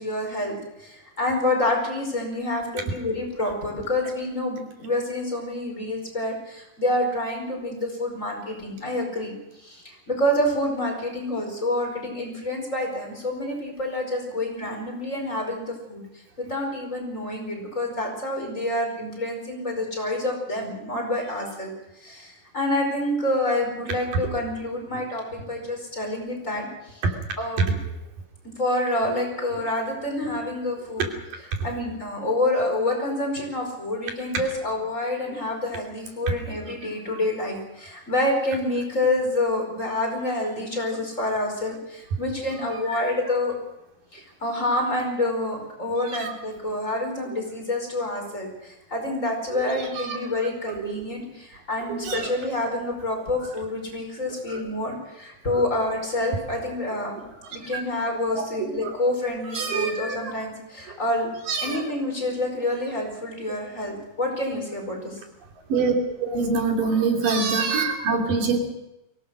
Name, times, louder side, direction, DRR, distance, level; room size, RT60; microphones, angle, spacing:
voice 1, 0.0-27.0 27.4-27.8 28.6-31.1 31.6-43.6 44.1-57.2 57.5-61.3 61.6-65.2, left 1 dB, 20° left, 1 dB, 5.2 m, -28 dB
voice 2, 49.5-50.2 50.8-50.9 51.9-52.3 54.5-54.6 55.5-55.6 57.5-57.8 58.3-58.5 58.8-59.0 59.5-60.3 60.9-61.0 61.5-61.8 65.7-65.9 66.2-68.6, right 4 dB, 80° right, 2 dB, 4.6 m, -26 dB
23.5 x 18.0 x 6.4 m, 0.91 s
omnidirectional pair, 3.8 m